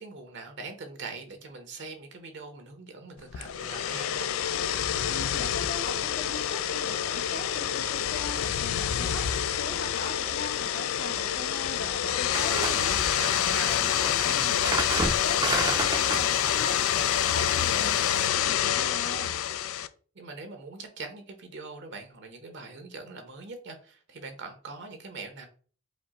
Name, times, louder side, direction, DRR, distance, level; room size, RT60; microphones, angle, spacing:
voice 1, 0.0-4.3 12.0-13.8 20.1-25.5, right 3 dB, 60° right, 6 dB, 0.8 m, -42 dB
sound 1, 3.3-19.9, left 10 dB, 85° left, 0.4 m, -27 dB
voice 2, 5.1-12.8 13.3-19.4, left 2 dB, 60° left, 0 dB, 1.8 m, -40 dB
sound 2, 12.3-18.3, right 2 dB, 20° right, 0.5 m, -33 dB
5.1 x 2.1 x 4.1 m, 0.41 s
head